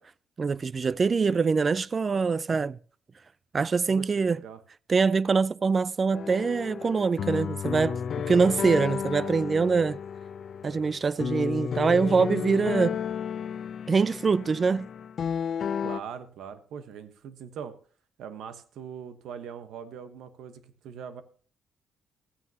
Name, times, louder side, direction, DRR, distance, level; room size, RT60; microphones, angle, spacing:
voice 1, 0.4-2.8 3.5-4.4 4.9-8.0 8.3-10.0 10.6-13.0 13.9-14.9, right 5 dB, 35° right, 0.3 m, -24 dB
voice 2, 1.3-1.6 3.9-4.6 15.8-17.7 18.2-21.2, right 7 dB, 80° right, 1.1 m, -41 dB
sound 1, 6.1-16.0, left 7 dB, 60° left, 0.4 m, -32 dB
14.5 x 9.4 x 2.9 m
cardioid pair, 90°, 0 cm